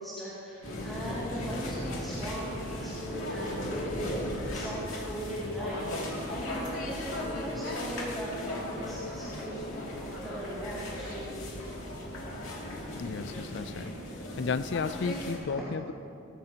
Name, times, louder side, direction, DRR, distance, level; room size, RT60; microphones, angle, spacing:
voice 1, 0.0-5.8 6.3-11.7 15.5-15.7, equal, ahead, -11 dB, 2.3 m, -39 dB
sound 1, 0.6-15.4, left 1 dB, 90° left, 2.5 m, -37 dB
voice 2, 13.0-13.9 14.4-15.9, left 5 dB, 55° left, 14 dB, 0.4 m, -33 dB
18.0 x 15.0 x 2.9 m, 2.7 s
head